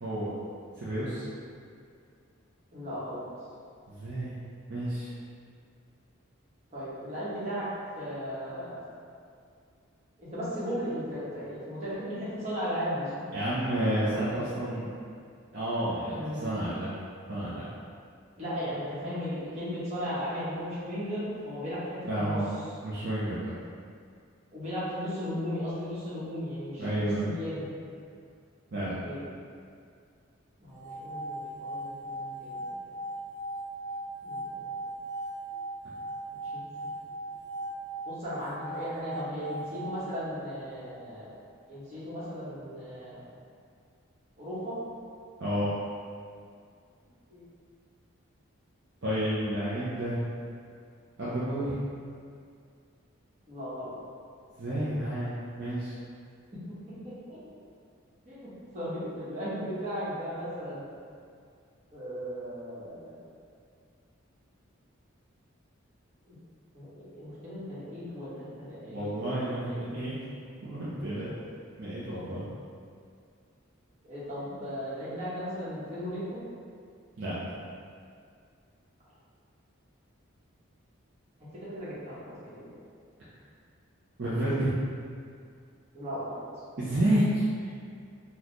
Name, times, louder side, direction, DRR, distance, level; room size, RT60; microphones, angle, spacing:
voice 1, 0.0-0.3 0.8-1.2 3.9-4.4 4.7-5.1 13.3-14.9 15.5-16.9 17.3-17.7 22.1-22.5 22.8-23.5 26.8-27.3 28.7-29.0 45.4-45.7 49.0-50.2 51.2-51.8 54.6-56.0 68.9-70.2 70.6-71.3 71.8-72.4 77.2-77.6 84.2-84.7 86.8-87.4, right 1 dB, 55° right, -11 dB, 0.6 m, -30 dB
voice 2, 2.7-3.2 6.7-7.7 7.9-8.8 10.2-13.2 13.6-14.0 16.1-16.4 18.4-22.4 24.5-27.7 29.0-29.3 30.6-32.9 34.2-34.6 36.5-36.7 38.0-41.3 41.7-43.2 44.4-44.8 47.3-47.4 53.5-53.9 57.0-57.4 58.2-60.8 61.9-63.3 66.2-66.4 66.7-69.8 74.0-76.4 81.5-82.8 85.9-86.4, equal, 30° right, -11 dB, 1.1 m, -36 dB
sound 1, 30.7-40.9, right 1 dB, 15° right, 0.9 m, -39 dB
4.1 x 2.3 x 3.0 m, 2.3 s
head